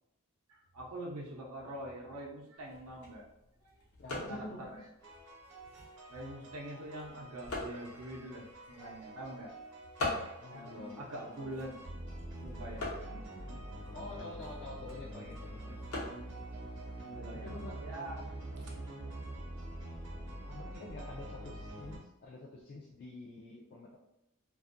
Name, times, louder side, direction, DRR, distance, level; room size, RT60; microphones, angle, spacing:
voice 1, 0.5-3.3 3.6-3.7 4.1-4.9 6.1-9.5 10.0-11.7 12.4-14.0 17.0-18.2 18.6-18.8 20.4-20.5, right 1 dB, 80° right, -1 dB, 0.5 m, -45 dB
sound 1, 2.6-18.1, left 2 dB, 80° left, 0.8 m, -45 dB
voice 2, 4.0-4.9 10.4-11.8 13.9-15.8 17.3-17.9 20.5-24.0, left 2 dB, 45° left, -3 dB, 0.3 m, -47 dB
sound 2, 5.0-22.0, right 1 dB, 55° right, 0.8 m, -46 dB
2.5 x 2.3 x 2.5 m, 0.86 s
head